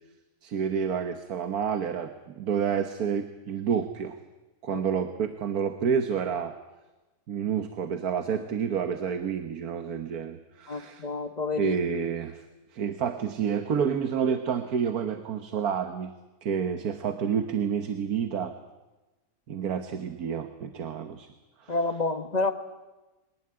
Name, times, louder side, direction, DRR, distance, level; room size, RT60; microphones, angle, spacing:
voice 1, 0.4-4.2 4.6-6.5 7.3-11.1 11.5-12.4 12.7-16.1 16.4-18.5 19.5-21.3 21.6-21.7, right 7 dB, 75° right, 8 dB, 1.6 m, -29 dB
voice 2, 10.7-11.8 21.7-22.5, left 3 dB, 30° left, 8 dB, 1.3 m, -29 dB
22.5 x 19.0 x 9.6 m, 1.1 s
omnidirectional pair, 1.6 m